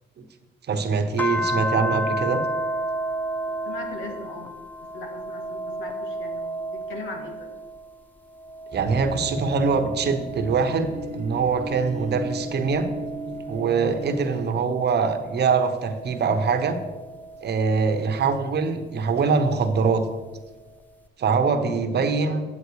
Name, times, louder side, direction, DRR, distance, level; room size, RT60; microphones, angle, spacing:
voice 1, 0.7-2.4 8.7-12.9 13.5-16.8 17.4-20.0 21.2-22.4, right 5 dB, 55° right, 7 dB, 1.1 m, -23 dB
sound 1, 1.2-7.9 8.4-11.2 11.8-14.6 15.4-17.8 19.2-20.2, equal, 10° left, 0.4 m, -33 dB
voice 2, 3.7-4.5 4.9-7.5 22.2-22.4, left 3 dB, 85° left, 3 dB, 1.8 m, -39 dB
sound 2, 8.7-14.5, right 1 dB, 35° right, 0.8 m, -35 dB
9.7 x 7.8 x 4.8 m, 1.2 s
cardioid pair, 90°, 20 cm